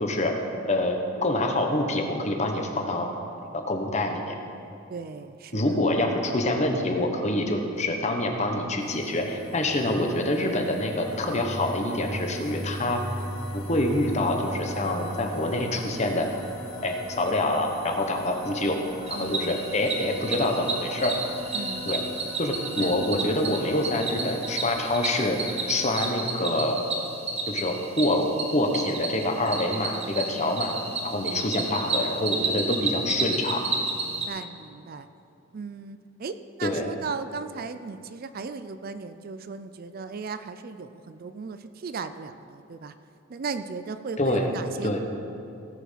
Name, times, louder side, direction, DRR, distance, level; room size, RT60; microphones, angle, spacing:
voice 1, 0.0-0.3 0.6-3.1 3.5-4.4 5.5-13.0 13.5-16.3 16.8-18.8 19.1-21.1 21.9-22.0 22.4-25.4 25.7-26.8 27.5-30.7 31.0-33.6 36.6-36.9 44.2-44.5 44.8-45.0, left 1 dB, 35° left, 3 dB, 1.2 m, -26 dB
voice 2, 4.9-5.7 19.1-19.5 21.5-22.4 22.8-22.9 34.0-35.1 35.5-42.9 43.3-45.0, right 4 dB, 45° right, 11 dB, 0.4 m, -37 dB
sound 1, 8.8-26.1, equal, 90° left, 2.6 m, -39 dB
Cricket, 19.1-34.3, right 3 dB, 30° right, 1.2 m, -31 dB
17.5 x 5.9 x 5.8 m, 2.8 s
head